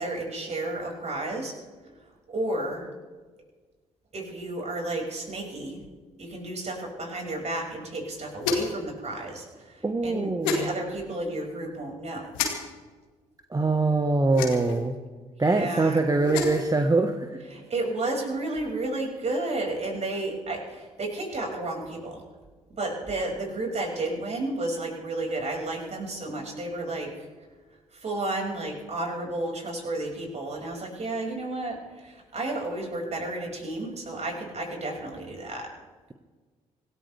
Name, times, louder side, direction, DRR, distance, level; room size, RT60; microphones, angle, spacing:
voice 1, 0.0-1.5 2.3-2.9 4.1-5.8 6.2-12.3 15.5-16.0 17.5-22.2 22.8-27.3 27.9-35.7, right 2 dB, 40° right, 0 dB, 5.9 m, -32 dB
sound 1, 8.4-8.8 10.4-10.6 12.3-12.5 14.3-14.8 16.1-16.7, left 5 dB, 80° left, 2.0 m, -28 dB
voice 2, 9.8-10.7 13.5-15.0 15.4-17.4, right 3 dB, 20° right, 5 dB, 1.4 m, -23 dB
25.5 x 15.0 x 3.4 m, 1.4 s
figure-of-eight pair, 45°, 17 cm